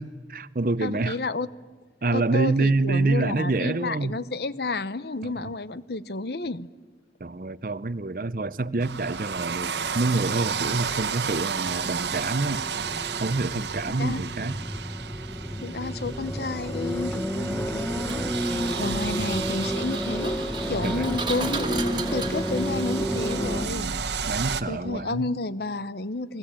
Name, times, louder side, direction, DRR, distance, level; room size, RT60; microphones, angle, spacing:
voice 1, 0.0-1.2 2.0-4.1 5.2-5.5 7.2-12.6 13.2-14.6 20.8-21.1 23.6-24.0 24.3-25.3, right 3 dB, 50° right, 0.7 m, -27 dB
voice 2, 0.8-1.5 2.1-6.7 14.0-14.2 15.6-20.4 20.7-24.3 24.7-26.4, left 3 dB, 65° left, 0.9 m, -31 dB
sound 1, 8.8-24.6, right 6 dB, 80° right, 1.2 m, -33 dB
sound 2, 9.6-23.7, equal, 5° left, 1.2 m, -31 dB
Engine, 18.1-23.8, right 4 dB, 25° right, 2.0 m, -35 dB
29.0 x 21.0 x 8.9 m
head